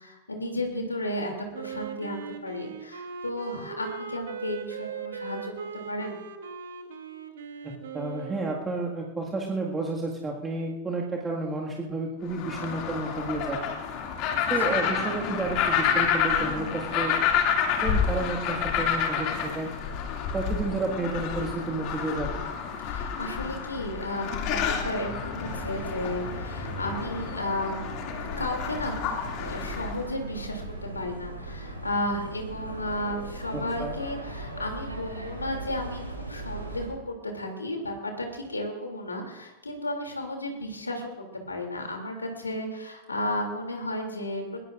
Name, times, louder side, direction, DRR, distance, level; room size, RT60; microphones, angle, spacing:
voice 1, 0.0-6.2 14.6-14.8 22.8-27.9 28.4-29.1 29.4-44.4, left 1 dB, 80° left, 3 dB, 2.9 m, -33 dB
Wind instrument woodwind instrument, 1.5-8.6, right 6 dB, 60° right, 1.5 m, -39 dB
voice 2, 7.9-13.8 14.5-17.2 17.8-19.7 20.3-22.5 33.5-33.9, right 3 dB, 15° right, -2 dB, 1.9 m, -31 dB
sound 1, 12.3-30.0, left 7 dB, 40° left, 2.4 m, -29 dB
sound 2, 25.4-36.9, right 2 dB, 80° right, 4.9 m, -39 dB
21.0 x 20.0 x 2.6 m, 1.1 s
figure-of-eight pair, 90°, 0 cm